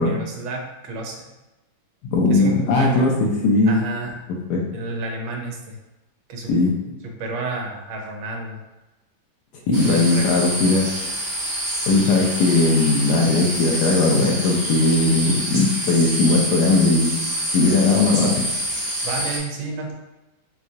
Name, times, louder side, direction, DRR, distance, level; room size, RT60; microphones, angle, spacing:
voice 1, 0.0-1.3 2.3-3.0 3.7-4.2 4.7-5.8 6.3-6.5 7.2-8.6 9.8-10.5 19.0-19.9, right 3 dB, 80° right, 1 dB, 1.5 m, -31 dB
voice 2, 2.1-3.8 4.5-4.6 6.5-6.7 9.7-10.9 11.9-17.2 17.5-18.4, left 3 dB, 70° left, -1 dB, 1.0 m, -18 dB
sound 1, 9.7-19.4, right 1 dB, 50° right, 0.7 m, -27 dB
4.6 x 2.3 x 2.6 m, 1.0 s
omnidirectional pair, 2.2 m